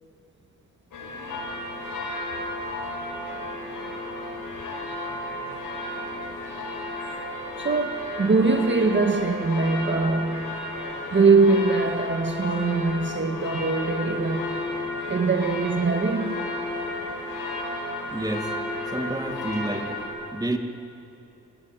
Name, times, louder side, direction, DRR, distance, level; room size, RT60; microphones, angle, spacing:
sound 1, 0.9-20.0, left 1 dB, 90° left, 5.6 m, -33 dB
voice 1, 7.6-10.5 11.1-14.7 15.1-16.4, right 4 dB, 35° right, 1.6 m, -22 dB
voice 2, 18.1-18.5 18.9-19.9 20.3-20.6, right 1 dB, 10° right, 2.1 m, -29 dB
29.5 x 17.0 x 9.2 m
cardioid pair, 110°, 32 cm